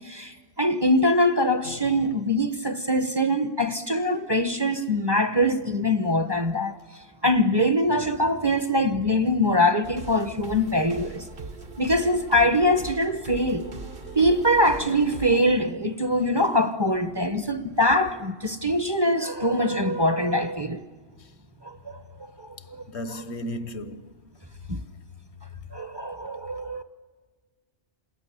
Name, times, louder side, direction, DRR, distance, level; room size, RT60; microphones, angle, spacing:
voice 1, 0.0-6.8 7.2-11.2 11.8-13.7 14.2-20.8 21.6-22.0 22.4-22.9 24.7-24.8 25.7-26.8, left 1 dB, 25° right, 0.8 m, -23 dB
sound 1, 9.8-15.4, right 3 dB, 55° right, 1.4 m, -40 dB
voice 2, 22.9-24.1, equal, 75° left, 1.2 m, -35 dB
27.5 x 20.0 x 10.0 m
omnidirectional pair, 1.1 m